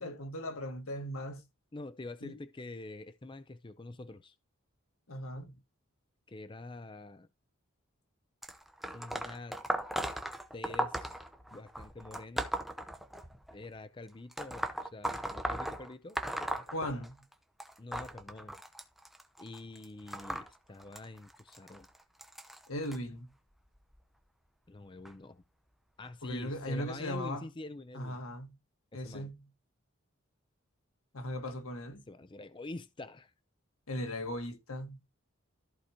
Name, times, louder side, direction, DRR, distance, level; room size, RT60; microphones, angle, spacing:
voice 1, 0.0-1.4 2.2-2.3 5.1-5.6 16.7-17.2 22.7-23.3 26.2-27.4 27.9-28.5 28.9-29.4 31.1-32.0 33.9-35.0, equal, 90° left, 1.6 m, -38 dB
voice 2, 1.7-4.4 6.3-7.3 8.9-9.6 10.5-11.2 11.5-12.5 13.5-16.7 17.8-18.6 19.4-21.9 24.7-25.4 26.0-28.2 28.9-29.3 32.1-33.3, left 2 dB, 20° left, 0.4 m, -46 dB
sound 1, 8.4-13.5 14.3-17.3 17.6-23.0 23.7-24.0 25.0-25.1 26.0-26.1 26.8-26.9, right 1 dB, ahead, 0.8 m, -37 dB
14.0 x 4.8 x 2.9 m
head